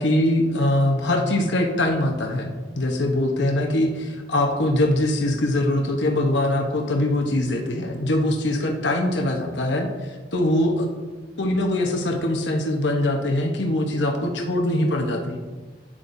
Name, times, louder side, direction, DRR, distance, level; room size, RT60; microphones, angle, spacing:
voice 1, 0.0-9.9 10.3-10.9 11.4-15.4, left 1 dB, 90° left, 2 dB, 1.0 m, -22 dB
11.0 x 8.9 x 2.7 m, 1.3 s
head